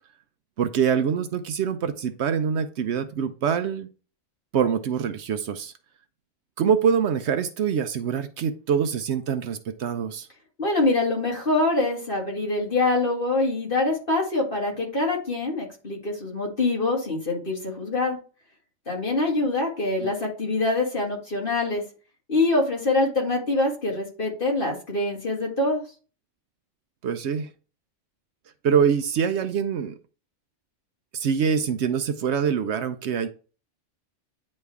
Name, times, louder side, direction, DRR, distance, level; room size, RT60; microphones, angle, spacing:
voice 1, 0.6-3.9 4.5-5.7 6.6-10.3 20.0-20.1 27.0-27.5 28.6-29.9 31.1-33.3, right 7 dB, 70° right, 0.9 m, -24 dB
voice 2, 10.6-18.2 18.9-21.8 22.3-25.8, left 2 dB, 45° left, 2.1 m, -24 dB
9.5 x 3.2 x 3.4 m
omnidirectional pair, 1.3 m